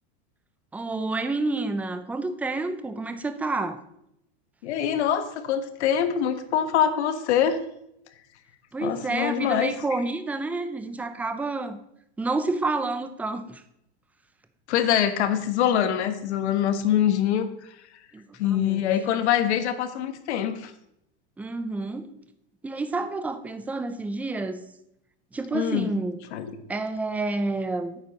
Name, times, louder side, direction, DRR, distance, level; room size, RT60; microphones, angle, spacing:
voice 1, 0.7-3.8 8.7-11.8 12.2-13.6 18.1-18.9 21.4-22.1 22.6-24.6 25.3-26.2 26.7-28.0, right 3 dB, 5° right, 10 dB, 0.5 m, -29 dB
voice 2, 4.6-7.6 8.8-9.7 14.7-17.5 18.4-20.7 25.5-25.9 26.3-26.6, left 9 dB, 80° left, 10 dB, 1.4 m, -24 dB
9.0 x 8.4 x 5.3 m, 0.77 s
supercardioid pair, 145°, 33 cm